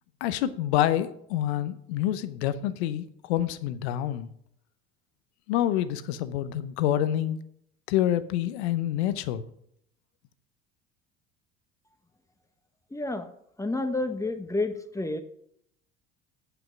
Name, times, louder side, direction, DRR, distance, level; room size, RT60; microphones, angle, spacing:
voice 1, 0.2-4.3 5.5-7.4 7.9-9.4, left 12 dB, 80° left, 13 dB, 0.8 m, -27 dB
voice 2, 12.9-13.3 13.6-15.2, left 2 dB, 10° left, 7 dB, 1.3 m, -29 dB
8.2 x 7.9 x 6.0 m, 0.70 s
hypercardioid pair, 75°, 32 cm